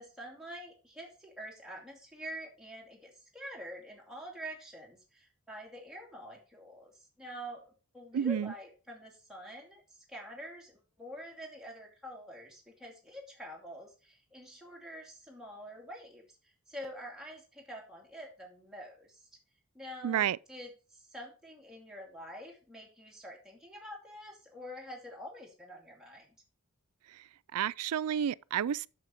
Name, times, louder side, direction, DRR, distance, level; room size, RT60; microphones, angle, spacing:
voice 1, 0.0-9.8 10.1-19.2 19.7-26.3, equal, 5° right, 2.5 m, -47 dB
voice 2, 8.1-8.5 20.0-20.4 27.5-28.9, right 9 dB, 85° right, 0.4 m, -30 dB
7.5 x 6.9 x 5.1 m
head